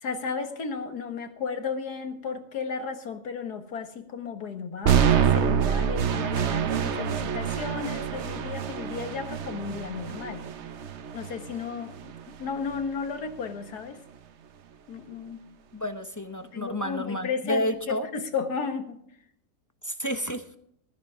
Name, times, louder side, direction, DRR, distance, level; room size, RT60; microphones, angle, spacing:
voice 1, 0.0-10.5 11.1-12.1 12.4-14.0 14.9-15.4 16.5-19.0, left 5 dB, 80° left, 7 dB, 2.1 m, -34 dB
sound 1, 4.8-12.9, right 8 dB, 55° right, 1.0 m, -27 dB
voice 2, 15.7-18.1 19.8-20.4, left 1 dB, 15° left, 7 dB, 0.7 m, -30 dB
15.0 x 14.0 x 3.7 m, 0.70 s
omnidirectional pair, 1.7 m